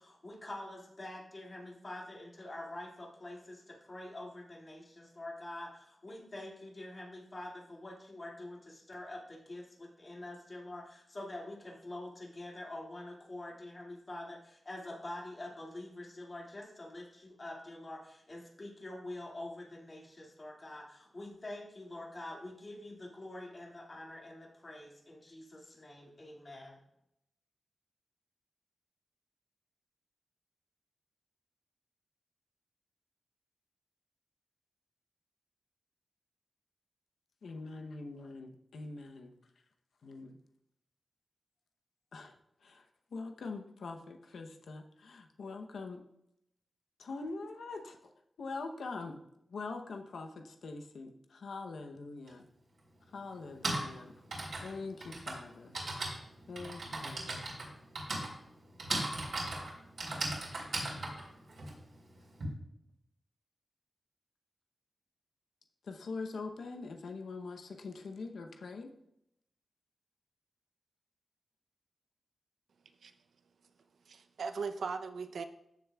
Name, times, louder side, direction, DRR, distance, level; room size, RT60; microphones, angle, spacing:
voice 1, 0.0-26.8, left 1 dB, 35° left, -2 dB, 2.1 m, -46 dB
voice 2, 37.4-39.3 40.0-40.4 42.1-42.3 42.6-42.8 43.1-46.0 47.0-48.1 48.4-49.2 49.5-52.5 53.1-54.1 54.6-55.8 56.5-57.4 65.8-68.9, left 3 dB, 90° left, 4 dB, 0.8 m, -43 dB
Typing, 52.3-52.4 53.3-62.4, right 2 dB, 70° right, 3.2 m, -38 dB
voice 3, 74.1-75.4, right 5 dB, 90° right, 9 dB, 0.6 m, -38 dB
14.0 x 6.8 x 2.3 m, 0.80 s
wide cardioid pair, 130°, 0 cm